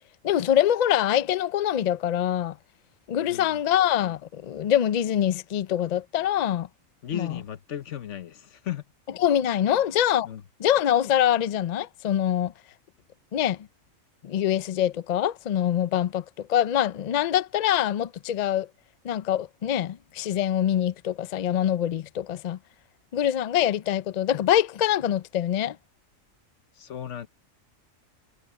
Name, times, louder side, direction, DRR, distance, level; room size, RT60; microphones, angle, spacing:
voice 1, 0.2-2.6 3.1-6.7 7.1-7.3 9.2-10.3 10.6-12.5 13.3-13.6 14.2-18.7 19.0-22.6 23.1-25.8, left 11 dB, 85° left, 0.3 m, -24 dB
voice 2, 3.2-3.6 7.0-8.8 9.7-9.8 10.2-10.4 26.7-27.3, left 10 dB, 65° left, 1.3 m, -36 dB
omnidirectional pair, 1.4 m